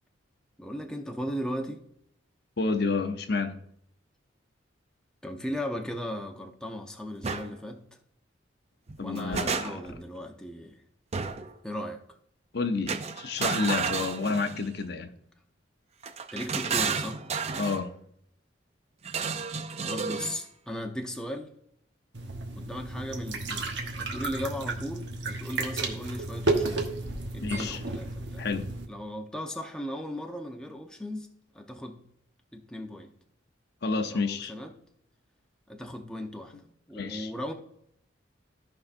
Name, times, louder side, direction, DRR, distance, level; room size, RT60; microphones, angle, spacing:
voice 1, 0.6-1.8 5.2-7.8 9.0-10.8 11.6-12.0 16.3-17.2 19.8-21.5 22.6-26.9 27.3-28.5 28.9-31.3 31.5-32.0 32.5-33.1 34.0-34.7 35.7-36.5 36.9-37.5, equal, 5° left, 0.7 m, -37 dB
voice 2, 2.6-3.6 9.0-9.8 12.5-15.1 17.6-17.9 27.4-27.8 28.4-28.6 33.8-34.5 36.9-37.3, left 4 dB, 55° left, 0.7 m, -29 dB
sound 1, 7.2-7.5 8.9-10.0 11.1-11.5 12.9-14.7 16.0-17.8 19.0-20.4, right 5 dB, 35° right, 0.5 m, -32 dB
sound 2, 22.1-28.9, right 2 dB, 60° right, 1.2 m, -32 dB
14.5 x 5.5 x 2.6 m
head